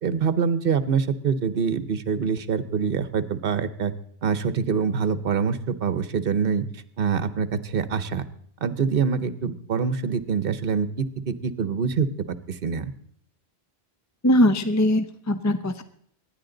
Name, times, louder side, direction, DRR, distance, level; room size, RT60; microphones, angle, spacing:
voice 1, 0.0-3.9 4.2-6.6 7.0-8.2 8.6-12.1 12.5-12.9, right 6 dB, 60° right, 14 dB, 1.1 m, -25 dB
voice 2, 14.2-15.8, left 1 dB, 20° left, 10 dB, 0.6 m, -21 dB
24.5 x 10.5 x 3.9 m, 0.64 s
omnidirectional pair, 1.1 m